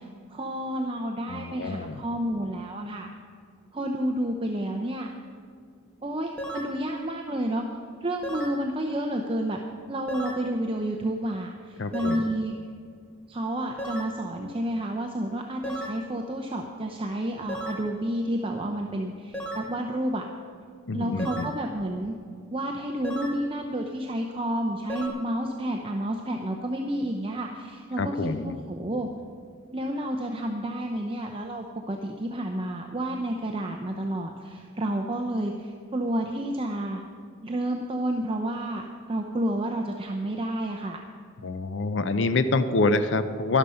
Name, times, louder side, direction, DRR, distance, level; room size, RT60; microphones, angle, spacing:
voice 1, 0.0-3.1 3.7-5.1 6.0-7.6 8.0-9.6 9.9-12.5 13.3-20.2 20.9-22.1 22.5-29.1 29.7-37.0 37.4-38.8 39.1-41.0, right 1 dB, 25° right, 2 dB, 0.6 m, -30 dB
voice 2, 1.3-2.0 11.8-12.2 20.9-21.6 28.0-28.6 41.4-43.6, left 3 dB, 60° left, 11 dB, 0.5 m, -26 dB
sound 1, 6.4-6.8 8.2-8.6 10.1-10.5 11.9-12.3 13.8-14.2 15.6-16.0 17.5-17.9 19.3-19.7 21.2-21.6 23.0-23.4 24.9-25.1, equal, 5° left, 1.3 m, -35 dB
12.0 x 11.5 x 5.6 m, 2.2 s
head